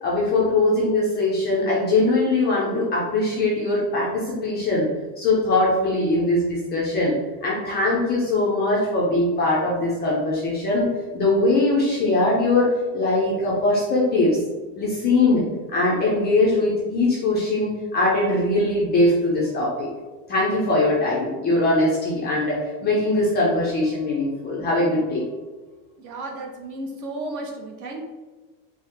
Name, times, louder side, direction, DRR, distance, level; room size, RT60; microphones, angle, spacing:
voice 1, 0.0-4.9 5.2-7.1 7.4-10.9 11.1-14.4 14.8-15.4 15.7-19.9 20.3-25.2, left 2 dB, 20° left, -5 dB, 0.4 m, -21 dB
voice 2, 26.0-28.0, right 2 dB, 40° right, 1 dB, 0.6 m, -33 dB
4.5 x 2.0 x 3.4 m, 1.3 s
cardioid pair, 160°, 47 cm